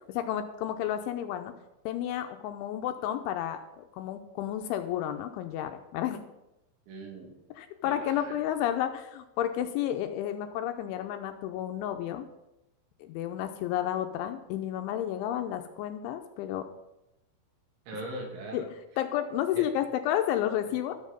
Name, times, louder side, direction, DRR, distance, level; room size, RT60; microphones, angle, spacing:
voice 1, 0.1-1.5 1.9-6.2 7.6-12.3 13.0-16.7 18.5-18.7 19.0-20.9, left 11 dB, 80° left, 7 dB, 2.9 m, -31 dB
voice 2, 6.9-7.4 7.8-8.4 17.9-18.7 19.5-19.7 20.7-20.8, right 2 dB, 75° right, 0 dB, 4.4 m, -40 dB
13.0 x 7.6 x 5.1 m, 0.93 s
omnidirectional pair, 5.7 m